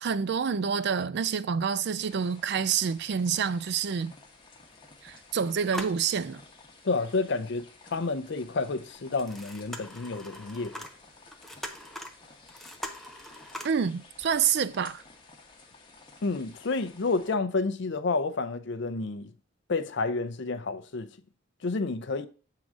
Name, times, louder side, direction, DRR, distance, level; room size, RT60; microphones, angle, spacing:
voice 1, 0.0-4.1 5.0-6.4 13.6-15.0, right 6 dB, 55° right, 0.4 m, -28 dB
sound 1, 2.0-17.3, left 3 dB, 20° left, 1.1 m, -54 dB
sound 2, 2.5-2.6 2.9-3.1 4.0-4.1 4.6-5.3 5.5-6.7 7.2-7.3 8.9-13.7, left 1 dB, ahead, 0.6 m, -42 dB
voice 2, 6.8-10.8 16.2-19.3 19.7-21.1 21.6-22.3, left 3 dB, 55° left, 0.6 m, -30 dB
7.3 x 3.8 x 6.1 m
head